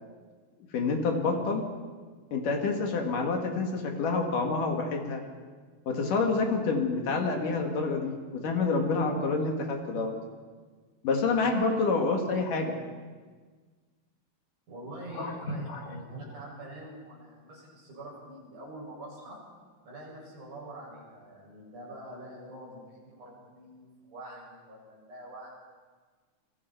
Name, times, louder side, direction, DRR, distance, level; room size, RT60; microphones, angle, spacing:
voice 1, 0.7-1.7 2.3-5.2 5.9-10.1 11.0-12.8 15.2-16.0, left 4 dB, 65° left, 2 dB, 3.4 m, -28 dB
voice 2, 14.7-19.4 19.8-25.5, right 1 dB, 60° right, -4 dB, 8.6 m, -45 dB
28.5 x 22.5 x 4.6 m, 1.5 s
omnidirectional pair, 4.1 m